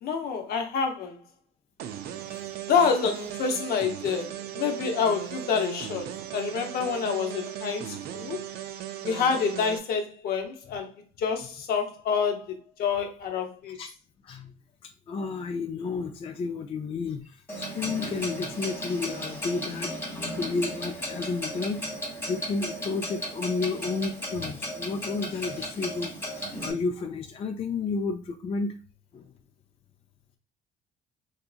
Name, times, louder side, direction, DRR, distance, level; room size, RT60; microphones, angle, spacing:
voice 1, 0.0-1.2 2.6-8.5 9.0-10.9 11.2-13.8, left 6 dB, 65° left, 0.7 m, -27 dB
sound 1, 1.8-9.8, right 11 dB, 70° right, 0.4 m, -37 dB
voice 2, 14.8-20.0 20.3-21.8 22.3-28.7 29.1-29.3, left 4 dB, 35° left, 0.3 m, -32 dB
Clock, 17.5-26.7, equal, 15° left, 0.8 m, -35 dB
2.8 x 2.5 x 2.3 m
cardioid pair, 110°, 17 cm